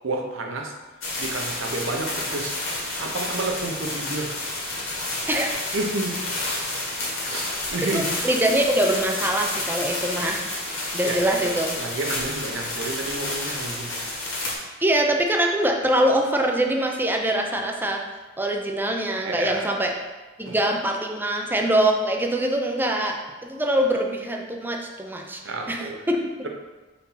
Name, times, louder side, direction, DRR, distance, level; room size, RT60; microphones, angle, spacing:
voice 1, 0.0-0.7 1.2-2.6 3.0-4.4 5.7-6.2 7.2-8.1 11.0-14.0 19.2-19.7 20.4-20.5 25.4-26.0, right 2 dB, 65° right, 2 dB, 0.9 m, -30 dB
sound 1, 1.0-14.5, left 2 dB, 80° left, 2.0 m, -30 dB
voice 2, 7.9-11.8 14.8-18.0 18.4-19.9 20.4-25.4 25.7-26.5, right 1 dB, 10° right, 2 dB, 0.6 m, -24 dB
4.4 x 4.2 x 5.6 m, 1.2 s
head